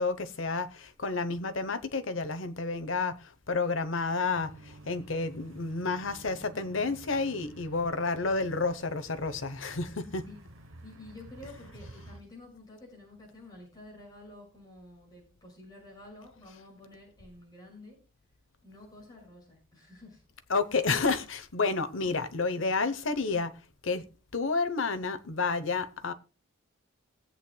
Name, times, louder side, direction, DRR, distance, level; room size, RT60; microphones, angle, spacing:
voice 1, 0.0-10.3 20.5-23.6 23.8-24.1 24.3-26.1, left 4 dB, 65° left, 1.0 m, -30 dB
sound 1, 4.3-12.2, right 2 dB, 75° right, 1.1 m, -51 dB
voice 2, 10.8-18.0 18.6-20.2, left 2 dB, 20° left, 5.9 m, -50 dB
21.0 x 8.6 x 2.3 m
head